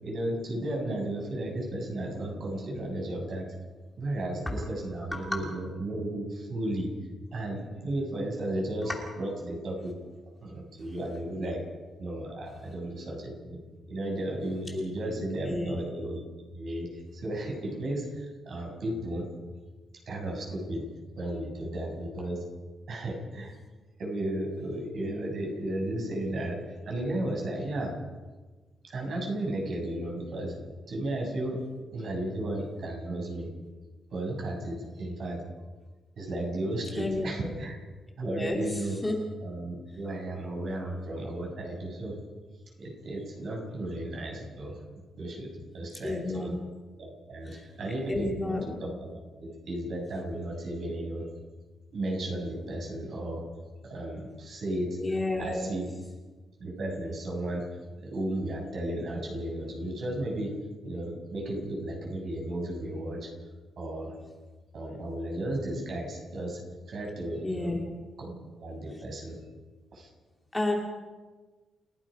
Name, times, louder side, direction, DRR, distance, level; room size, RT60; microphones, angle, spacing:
voice 1, 0.0-3.5 4.0-6.9 7.3-9.9 10.4-11.6 12.0-13.6 13.9-16.2 16.5-19.2 20.1-20.8 21.2-22.4 22.9-23.6 24.0-27.9 28.8-30.6 30.9-31.6 31.9-33.5 34.1-35.4 36.2-37.8 38.2-39.0 39.4-42.2 42.8-44.8 45.2-46.5 47.0-51.3 51.9-53.4 53.8-55.0 55.4-55.9 56.6-57.6 58.0-60.5 60.8-63.3 63.8-64.2 64.7-66.6 66.9-67.8 68.2-68.3 68.6-69.4 69.9-70.1, right 1 dB, 50° right, 0 dB, 7.2 m, -34 dB
voice 2, 15.1-15.8 36.9-37.3 38.2-38.6 39.0-39.2 46.0-46.5 47.5-47.6 48.1-48.6 55.0-55.7 67.4-67.8 70.5-70.7, left 2 dB, 10° left, 0 dB, 2.7 m, -31 dB
30.0 x 17.0 x 5.2 m, 1.3 s
cardioid pair, 155°, 0 cm